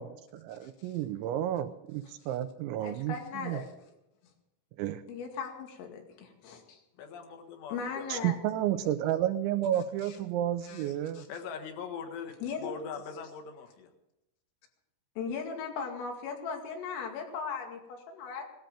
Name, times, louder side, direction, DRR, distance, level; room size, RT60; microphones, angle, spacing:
voice 1, 0.0-3.6 4.8-5.0 8.1-11.3, right 11 dB, 80° right, 11 dB, 2.8 m, -31 dB
voice 2, 0.6-0.9 2.8-3.7 5.1-6.8 7.7-8.4 9.7-10.2 10.6-11.3 12.4-12.8 15.2-18.4, left 5 dB, 90° left, 3 dB, 4.9 m, -38 dB
voice 3, 7.0-8.2 11.3-13.9, left 6 dB, 65° left, 5 dB, 3.4 m, -41 dB
18.5 x 13.0 x 5.1 m, 0.90 s
omnidirectional pair, 5.7 m